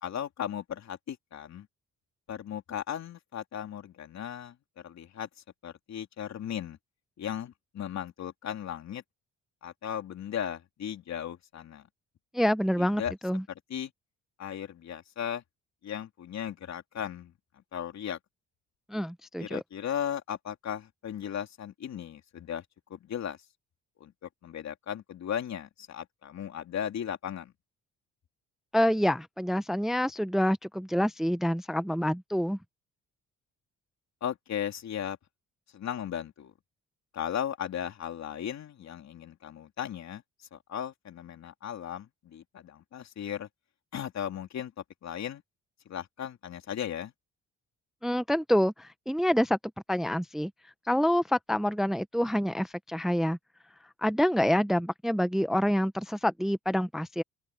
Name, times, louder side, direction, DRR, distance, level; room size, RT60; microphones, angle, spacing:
voice 1, 0.0-1.7 2.3-5.3 5.6-6.8 7.2-9.0 9.6-11.9 12.8-13.1 13.7-13.9 14.4-15.4 15.8-17.3 17.7-18.2 19.4-22.6 22.9-23.4 24.0-24.1 24.4-27.5 34.2-35.2 35.7-36.5 37.1-40.2 40.5-43.5 43.9-44.7 45.0-45.4 45.8-47.1, left 9 dB, 65° left, 3.4 m, -36 dB
voice 2, 12.3-13.4 18.9-19.6 28.7-32.6 48.0-49.6 49.9-50.5 50.9-53.4 54.0-57.2, equal, ahead, 0.6 m, -27 dB
open air
cardioid pair, 90°, 30 cm